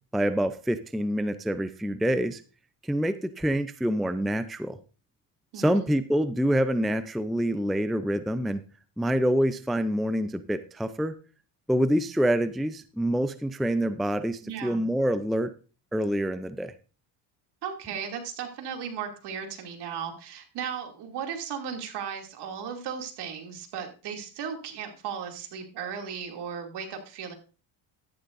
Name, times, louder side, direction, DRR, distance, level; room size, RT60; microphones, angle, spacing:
voice 1, 0.1-2.4 2.8-4.8 5.6-8.6 9.0-11.1 11.7-15.5 15.9-16.7, equal, ahead, 11 dB, 0.5 m, -26 dB
voice 2, 5.5-5.9 14.4-14.9 17.6-27.3, right 7 dB, 60° right, 3 dB, 2.7 m, -36 dB
13.5 x 11.0 x 2.6 m, 0.34 s
cardioid pair, 105°, 44 cm